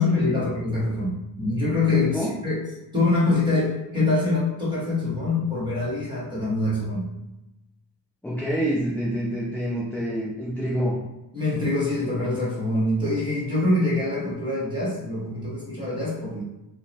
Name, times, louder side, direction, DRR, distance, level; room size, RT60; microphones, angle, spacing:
voice 1, 0.0-2.6 2.9-7.1 11.3-16.4, left 2 dB, 10° right, -7 dB, 1.3 m, -24 dB
voice 2, 8.2-11.0, equal, 5° left, -6 dB, 0.3 m, -27 dB
4.6 x 2.1 x 2.8 m, 0.94 s
wide cardioid pair, 175°, 42 cm